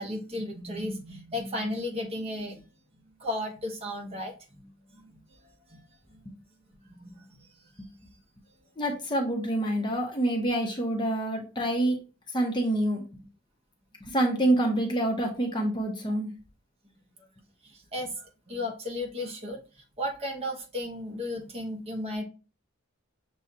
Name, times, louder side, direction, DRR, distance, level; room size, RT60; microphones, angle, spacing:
voice 1, 0.0-2.6 3.2-5.2 5.7-5.8 6.1-6.2 6.8-7.5 7.8-7.9 17.6-19.6 20.0-22.2, left 1 dB, 30° right, 1 dB, 0.9 m, -35 dB
voice 2, 8.8-12.0 12.3-13.0 14.0-16.3, right 1 dB, 20° left, 1 dB, 0.8 m, -27 dB
6.5 x 2.3 x 2.7 m, 0.33 s
head